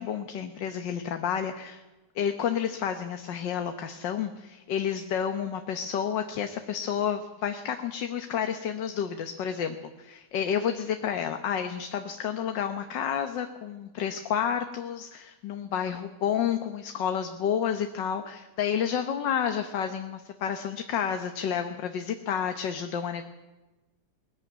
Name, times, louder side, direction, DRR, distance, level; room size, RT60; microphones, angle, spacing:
voice 1, 0.0-1.8 2.2-23.2, left 8 dB, 80° left, 7 dB, 1.7 m, -30 dB
20.0 x 14.5 x 9.3 m, 1.1 s
omnidirectional pair, 1.9 m